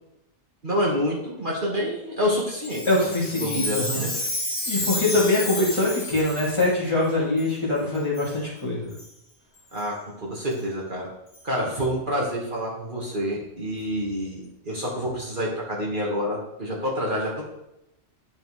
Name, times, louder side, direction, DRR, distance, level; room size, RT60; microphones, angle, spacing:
voice 1, 0.6-4.1 9.7-11.1 11.4-17.4, equal, 45° right, -3 dB, 1.7 m, -28 dB
Chime, 2.6-6.7 7.4-7.5 8.1-8.3 8.9-9.1 9.8-9.9 10.5-10.6 11.3-11.4, left 1 dB, 55° left, 1.8 m, -31 dB
voice 2, 2.9-4.0 4.6-8.9, left 2 dB, 25° left, -7 dB, 2.6 m, -23 dB
10.0 x 5.3 x 3.2 m, 0.86 s
omnidirectional pair, 1.2 m